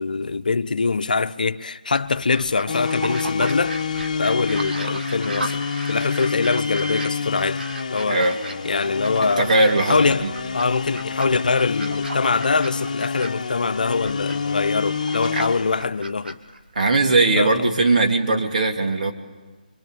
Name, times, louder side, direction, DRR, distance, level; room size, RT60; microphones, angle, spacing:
voice 1, 0.0-3.8 4.2-7.6 7.9-8.2 8.6-10.3 10.5-16.4 17.4-17.7, left 4 dB, 65° left, 1.0 m, -23 dB
sound 1, 1.9-17.1, right 2 dB, 80° right, 2.4 m, -36 dB
sound 2, 2.7-15.9, left 5 dB, 50° left, 1.4 m, -28 dB
voice 2, 9.4-10.3 15.3-15.4 16.8-19.1, right 2 dB, 55° right, 3.4 m, -19 dB
25.5 x 24.0 x 8.7 m
figure-of-eight pair, 160°, 5 cm